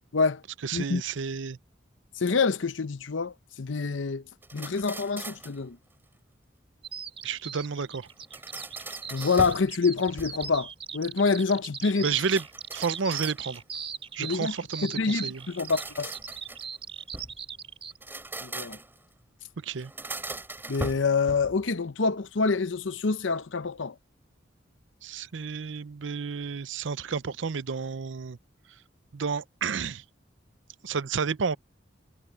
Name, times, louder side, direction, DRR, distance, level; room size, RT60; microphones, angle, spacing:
voice 1, 0.6-1.6 7.2-8.1 12.0-12.4 12.7-13.6 14.2-15.4 19.6-19.9 25.0-28.4 29.1-30.0 30.8-31.6, right 5 dB, 80° right, 0.6 m, -31 dB
voice 2, 2.2-4.2 4.5-5.8 9.1-12.1 14.2-14.5 14.8-16.1 18.4-18.8 20.7-23.9, left 4 dB, 90° left, 0.8 m, -26 dB
sound 1, 4.4-5.6 8.1-9.7 10.0-10.7 12.1-13.8 15.3-17.4 17.9-19.0 19.8-21.6, right 2 dB, 10° right, 4.3 m, -40 dB
Bird vocalization bird call bird song, 6.8-18.0, right 7 dB, 30° right, 2.9 m, -39 dB
head